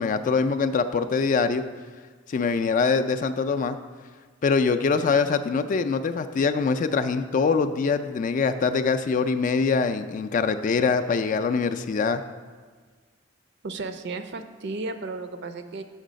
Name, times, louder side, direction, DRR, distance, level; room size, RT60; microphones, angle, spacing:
voice 1, 0.0-1.6 2.3-3.8 4.4-12.2, left 5 dB, 40° left, 9 dB, 0.3 m, -23 dB
voice 2, 13.6-15.8, right 3 dB, 60° right, 8 dB, 0.5 m, -34 dB
6.5 x 5.3 x 5.1 m, 1.5 s
head